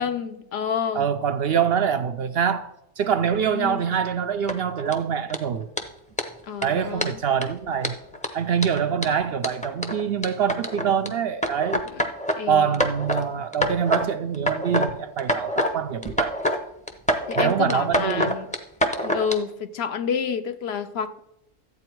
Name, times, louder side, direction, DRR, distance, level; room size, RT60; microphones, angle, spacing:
voice 1, 0.0-1.1 3.5-3.8 6.4-7.2 11.9-12.0 12.4-12.7 17.3-18.5 19.0-21.2, left 7 dB, 60° left, 0.9 m, -29 dB
voice 2, 0.9-2.7 3.0-5.7 6.6-8.0 8.3-11.8 12.5-16.4 17.4-18.4, right 8 dB, 65° right, 0.6 m, -24 dB
sound 1, 4.5-4.9 5.3-5.4 5.8-5.9 6.2-6.3 6.6-6.7 7.0-7.4 7.8-11.1 11.4-12.4 12.7-13.2 13.5-14.1 14.3-14.9 15.2-15.7 16.0-16.6 16.9-19.3, equal, 5° left, 0.7 m, -25 dB
13.0 x 8.5 x 4.5 m
omnidirectional pair, 1.4 m